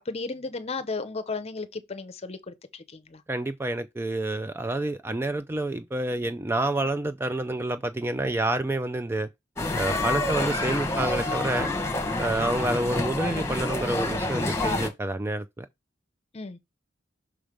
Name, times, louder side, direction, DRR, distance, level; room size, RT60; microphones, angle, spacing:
voice 1, 0.0-3.2 12.3-12.6 16.3-16.6, left 3 dB, 35° left, 0.7 m, -35 dB
voice 2, 3.3-9.3 9.7-11.7 12.2-15.7, right 2 dB, 10° right, 0.3 m, -28 dB
sound 1, 9.6-14.9, left 2 dB, 15° left, 1.2 m, -28 dB
6.1 x 3.2 x 5.1 m
head